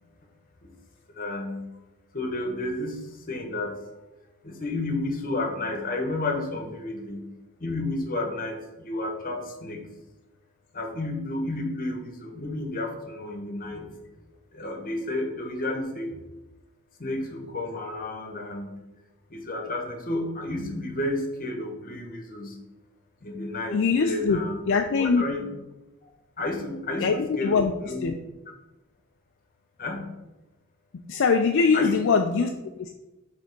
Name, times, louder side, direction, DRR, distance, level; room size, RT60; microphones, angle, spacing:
voice 1, 1.1-1.7 2.1-3.8 4.4-7.3 7.6-9.9 10.7-14.0 14.5-16.2 17.0-18.8 19.3-22.6 23.2-24.6 24.9-25.5 26.0-26.1 26.4-28.1 29.8-30.1 31.7-31.9, left 2 dB, 40° left, 2 dB, 1.1 m, -31 dB
voice 2, 23.7-24.4 24.7-25.2 27.0-27.2 27.4-27.7 28.0-28.1 31.1-32.9, left 5 dB, 60° left, 4 dB, 0.4 m, -22 dB
5.2 x 3.5 x 5.2 m, 1.0 s
head